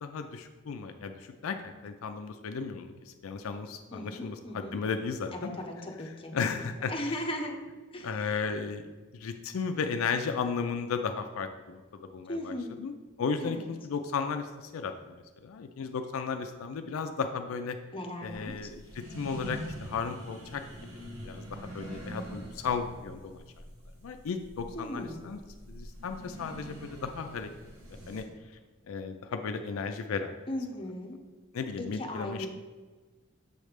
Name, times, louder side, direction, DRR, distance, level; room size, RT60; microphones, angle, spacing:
voice 1, 0.0-5.6 6.3-6.9 8.0-11.8 12.1-12.5 12.8-12.9 13.2-17.8 18.2-20.6 21.2-23.4 24.0-25.4 25.7-27.5 28.1-28.3 28.9-30.3 31.5-32.5, left 5 dB, 75° left, 7 dB, 0.4 m, -34 dB
voice 2, 3.9-4.8 5.3-6.3 6.9-7.6 7.9-8.1 12.3-12.8 13.4-13.7 17.9-18.7 24.7-25.2 30.5-31.2 31.8-32.5, left 1 dB, 25° left, 2 dB, 0.8 m, -37 dB
sound 1, 18.2-28.2, right 1 dB, 75° right, 1.3 m, -44 dB
7.0 x 3.2 x 5.0 m, 1.3 s
head